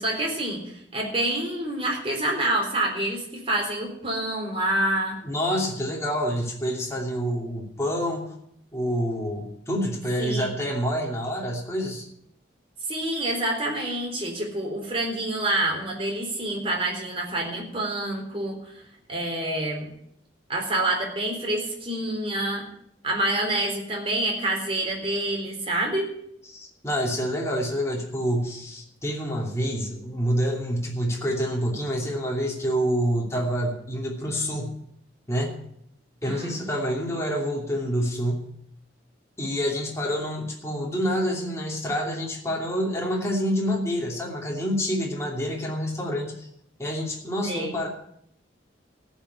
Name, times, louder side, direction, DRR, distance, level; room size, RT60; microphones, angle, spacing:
voice 1, 0.0-5.2 10.2-10.5 12.9-18.8 19.1-19.9 20.5-22.6 23.0-26.1 36.2-36.6 47.4-47.7, right 1 dB, 30° right, -1 dB, 3.8 m, -27 dB
voice 2, 5.2-8.4 8.7-12.1 26.5-34.7 35.3-35.6 36.2-38.5 39.4-46.3 46.8-47.9, equal, 15° left, -1 dB, 2.8 m, -27 dB
14.5 x 6.3 x 9.5 m, 0.70 s
head